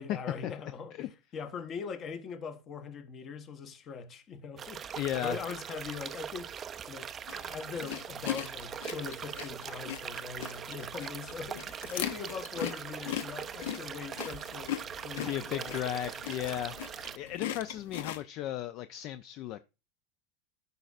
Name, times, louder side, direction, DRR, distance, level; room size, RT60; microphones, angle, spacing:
voice 1, 0.0-6.5 6.9-15.8, left 5 dB, 35° left, 0.9 m, -41 dB
sound 1, 4.6-17.2, right 8 dB, 25° right, 0.3 m, -41 dB
voice 2, 5.0-5.4 15.2-19.6, left 12 dB, 50° left, 0.4 m, -35 dB
sound 2, 7.3-18.2, left 11 dB, 80° left, 0.7 m, -40 dB
13.0 x 5.3 x 2.4 m
supercardioid pair, 135°, 0 cm